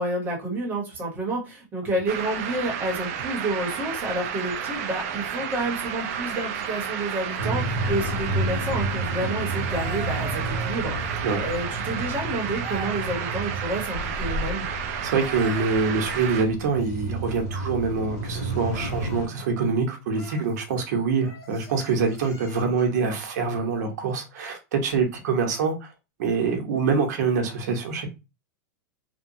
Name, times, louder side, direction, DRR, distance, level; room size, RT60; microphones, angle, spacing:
voice 1, 0.0-14.7, right 1 dB, 20° right, 1.0 m, -29 dB
sound 1, 2.1-16.4, right 8 dB, 50° right, 0.4 m, -32 dB
sound 2, 7.4-19.3, right 2 dB, 65° left, 1.4 m, -31 dB
sound 3, 9.4-11.4 12.6-13.6 15.0-16.6 18.7-19.3 20.1-20.5 21.2-23.0 24.9-25.1, equal, 30° left, 0.8 m, -43 dB
voice 2, 15.0-25.9 26.2-28.1, right 5 dB, 65° right, 0.8 m, -25 dB
2.8 x 2.2 x 2.6 m
supercardioid pair, 155°, 10 cm